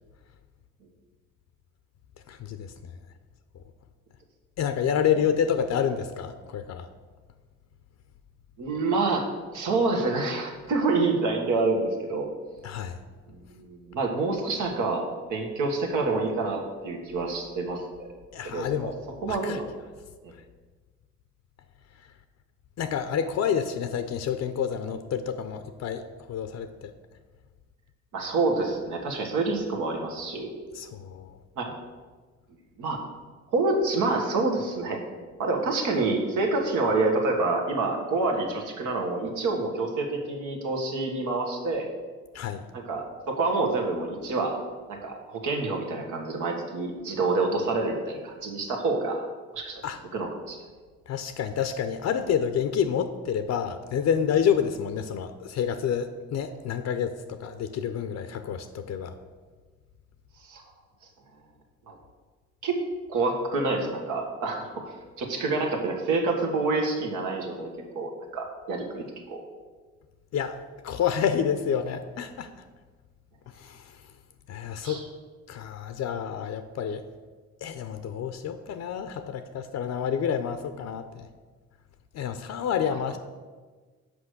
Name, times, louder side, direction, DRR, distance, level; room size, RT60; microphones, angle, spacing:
voice 1, 2.3-2.9 4.6-6.9 12.6-13.0 18.3-19.0 19.3-19.6 22.0-22.1 22.8-26.9 30.7-31.4 42.3-42.6 49.8-50.0 51.1-59.1 70.3-72.5 73.5-74.0 74.5-75.0 75.5-77.0 77.6-81.3 82.1-83.2, left 8 dB, 60° left, 9 dB, 0.5 m, -29 dB
voice 2, 8.6-9.2 9.5-12.3 13.3-15.0 15.3-18.1 18.4-18.9 19.2-19.6 20.2-20.3 28.1-30.5 31.6-31.7 32.8-33.0 33.5-35.0 35.4-41.9 42.7-44.6 44.9-49.3 49.5-49.8 50.1-50.6 60.4-60.6 61.9-62.0 62.6-62.8 63.1-67.7 67.9-69.4 74.8-75.0, right 3 dB, 85° right, 1 dB, 1.4 m, -27 dB
6.1 x 5.0 x 6.5 m, 1.4 s
cardioid pair, 90°, 30 cm